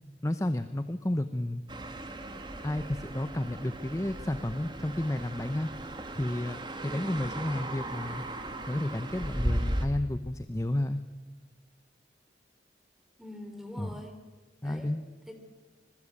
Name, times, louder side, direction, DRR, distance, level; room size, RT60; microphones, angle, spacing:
voice 1, 0.2-1.6 2.6-5.7 6.1-8.2 8.7-11.0 13.8-13.9 14.6-15.0, left 1 dB, 15° left, 10 dB, 0.7 m, -31 dB
sound 1, 1.7-9.9, right 1 dB, 25° right, 2.0 m, -36 dB
voice 2, 6.9-7.3 13.2-14.2 14.6-15.0 15.3-15.4, left 1 dB, ahead, 6 dB, 3.3 m, -44 dB
26.0 x 21.0 x 8.5 m, 1.3 s
head